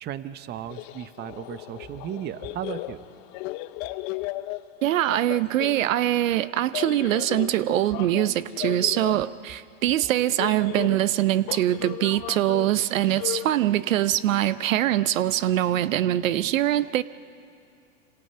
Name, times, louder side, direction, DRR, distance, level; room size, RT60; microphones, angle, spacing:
voice 1, 0.0-3.1, right 10 dB, 25° right, 13 dB, 0.9 m, -35 dB
sound 1, 0.7-5.9 6.7-9.3 10.0-13.5, left 18 dB, 40° left, 0.8 m, -35 dB
voice 2, 4.8-17.0, right 13 dB, 75° right, 16 dB, 0.7 m, -23 dB
27.5 x 26.5 x 5.6 m, 2.4 s
hypercardioid pair, 125°, 39 cm